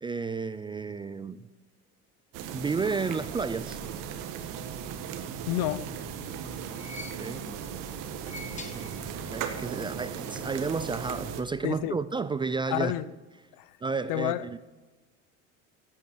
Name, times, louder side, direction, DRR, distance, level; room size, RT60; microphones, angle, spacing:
voice 1, 0.0-1.5 2.5-3.8 7.1-7.4 8.6-12.9 13.8-14.6, right 4 dB, 15° right, 0.3 m, -32 dB
sound 1, 2.3-11.4, right 7 dB, 65° right, 1.5 m, -37 dB
voice 2, 5.5-5.8 11.6-12.0 12.7-13.1 13.6-13.7 14.1-14.4, left 14 dB, 70° left, 0.8 m, -29 dB
sound 2, 5.9-7.6 8.1-9.5 9.7-9.8 11.0-11.1, left 3 dB, 20° left, 1.4 m, -47 dB
10.5 x 8.7 x 9.9 m
cardioid pair, 125°, 34 cm